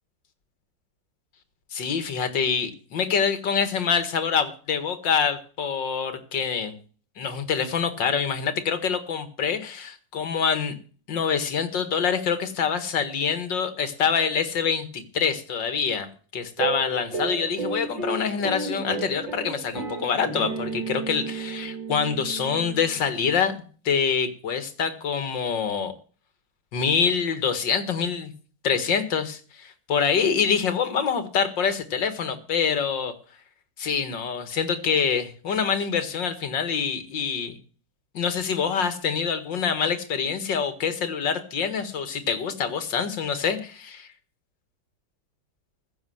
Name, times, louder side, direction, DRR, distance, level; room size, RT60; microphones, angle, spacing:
voice 1, 1.7-6.7 7.2-10.7 11.1-16.1 16.3-25.9 26.7-28.3 28.6-33.1 33.8-37.6 38.1-44.1, left 6 dB, 85° left, 10 dB, 2.4 m, -25 dB
sound 1, 16.6-23.1, right 4 dB, 90° right, 3.6 m, -33 dB
15.5 x 6.7 x 7.8 m, 0.41 s
omnidirectional pair, 1.9 m